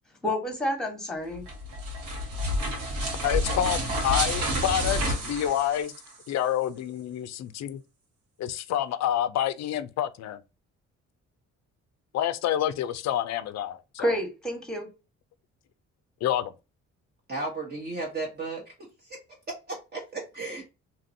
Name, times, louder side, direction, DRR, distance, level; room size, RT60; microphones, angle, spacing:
voice 1, 0.2-1.5 14.0-14.9, left 1 dB, ahead, 1.1 m, -29 dB
sound 1, 1.3-6.3, equal, 80° right, 1.4 m, -29 dB
voice 2, 3.2-5.9 6.3-7.8 8.4-10.4 12.1-14.2 16.2-16.5, left 11 dB, 60° left, 0.4 m, -28 dB
voice 3, 17.3-19.2 19.5-20.7, right 3 dB, 35° right, 0.8 m, -35 dB
2.9 x 2.6 x 2.6 m
cardioid pair, 90°, 30 cm